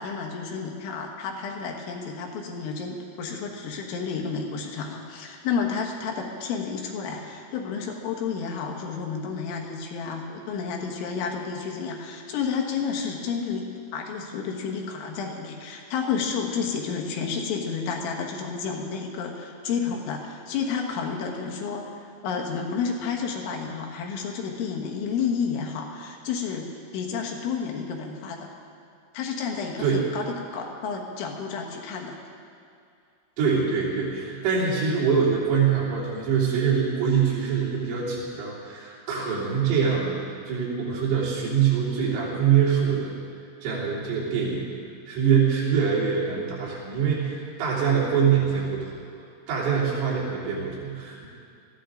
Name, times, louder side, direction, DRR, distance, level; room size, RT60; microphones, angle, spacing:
voice 1, 0.0-28.5 29.1-30.3 30.5-32.2, left 6 dB, 75° left, 1 dB, 3.8 m, -31 dB
voice 2, 33.4-43.1 43.6-44.7 45.1-48.9 49.5-51.3, right 6 dB, 85° right, -7 dB, 5.8 m, -24 dB
20.5 x 15.0 x 3.8 m, 2.4 s
omnidirectional pair, 5.6 m